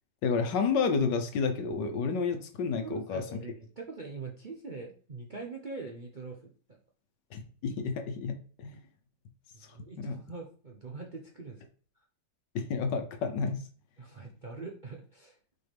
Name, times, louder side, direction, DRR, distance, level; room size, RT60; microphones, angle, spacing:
voice 1, 0.2-3.2 7.3-8.8 10.0-10.2 12.5-13.6, left 5 dB, 70° left, 7 dB, 1.5 m, -30 dB
voice 2, 2.7-6.8 9.5-11.6 14.0-15.4, right 3 dB, 55° right, 0 dB, 0.5 m, -43 dB
6.4 x 4.9 x 3.4 m, 0.42 s
omnidirectional pair, 2.0 m